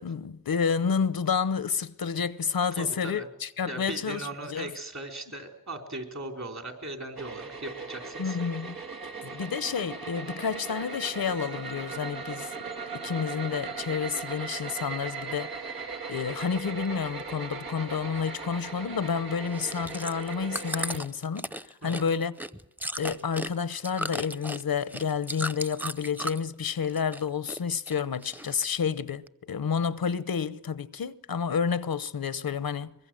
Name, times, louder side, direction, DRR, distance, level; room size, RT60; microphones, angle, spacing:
voice 1, 0.0-4.7 8.2-8.8 9.2-12.5 12.9-15.6 16.1-21.4 21.8-22.3 23.0-32.9, left 6 dB, 80° left, 0.8 m, -30 dB
voice 2, 2.7-3.3 3.7-8.4 21.8-22.1, right 1 dB, 50° right, 4.1 m, -38 dB
sound 1, 7.2-21.0, right 4 dB, 85° right, 2.0 m, -38 dB
Chewing mastication, 19.5-26.5 26.8-27.6 27.9-28.8 29.3-29.4, equal, 5° right, 0.8 m, -36 dB
24.0 x 21.5 x 7.7 m
wide cardioid pair, 55°, 35 cm